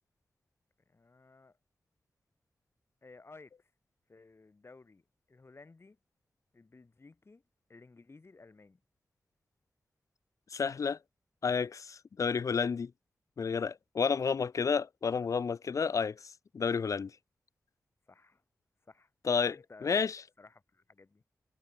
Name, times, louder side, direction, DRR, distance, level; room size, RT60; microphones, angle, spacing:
voice 1, 0.9-1.6 3.0-3.7 4.1-6.0 6.5-7.4 7.7-8.8 18.1-18.4 18.8-19.1 19.4-20.0 20.4-21.2, left 3 dB, 45° left, 3.1 m, -56 dB
voice 2, 10.5-11.0 11.4-12.9 13.4-16.2 16.5-17.1 19.2-19.5 19.8-20.2, left 5 dB, 70° left, 0.7 m, -30 dB
cardioid pair, 50°, 6 cm